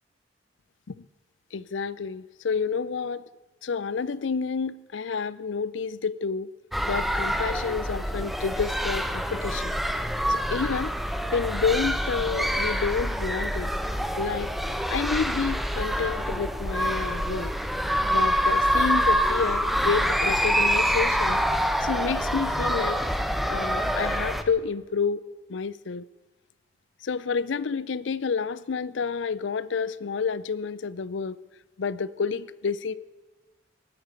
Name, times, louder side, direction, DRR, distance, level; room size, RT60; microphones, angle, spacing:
voice 1, 1.5-3.2 3.6-6.5 6.9-9.8 10.3-10.9 11.3-13.7 14.2-14.5 14.9-17.5 18.1-21.4 21.8-23.0 23.5-25.2 25.5-26.0 27.0-31.4 31.8-32.9, left 5 dB, 70° left, 19 dB, 0.5 m, -29 dB
sound 1, 6.7-24.4, equal, ahead, 0.8 m, -26 dB
18.5 x 8.9 x 8.2 m, 1.2 s
head